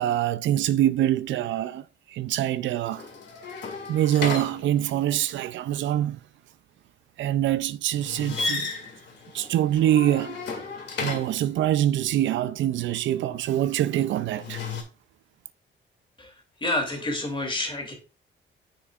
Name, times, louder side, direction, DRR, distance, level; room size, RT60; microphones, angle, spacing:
voice 1, 0.0-3.1 3.9-6.2 7.2-8.7 9.3-10.4 11.0-14.6, right 12 dB, 70° right, 0.5 m, -25 dB
sound 1, 2.8-5.2 7.9-11.5 14.2-14.8, left 4 dB, 60° left, 2.2 m, -34 dB
voice 2, 16.2-17.9, left 1 dB, 25° left, 2.8 m, -29 dB
9.7 x 5.8 x 2.4 m
cardioid pair, 90°, 20 cm